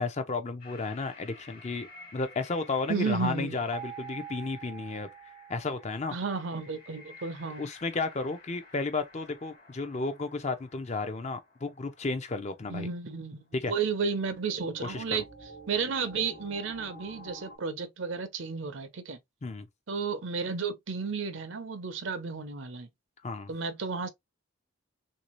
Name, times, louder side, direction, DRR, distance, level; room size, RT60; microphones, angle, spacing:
voice 1, 0.0-1.9 2.1-5.1 5.5-6.2 7.6-12.9 13.5-13.7 14.8-15.0 19.4-19.7 23.2-23.5, left 3 dB, 30° left, 0.5 m, -33 dB
sound 1, 0.6-12.3 12.8-12.9 13.7-17.6, left 1 dB, 50° left, 1.3 m, -52 dB
voice 2, 2.9-3.6 6.1-7.6 12.7-15.2 15.7-19.2 19.9-22.9 23.5-24.1, right 5 dB, 65° right, 0.6 m, -32 dB
sound 2, 3.7-6.7, right 9 dB, 75° left, 1.2 m, -45 dB
3.2 x 2.6 x 3.0 m
head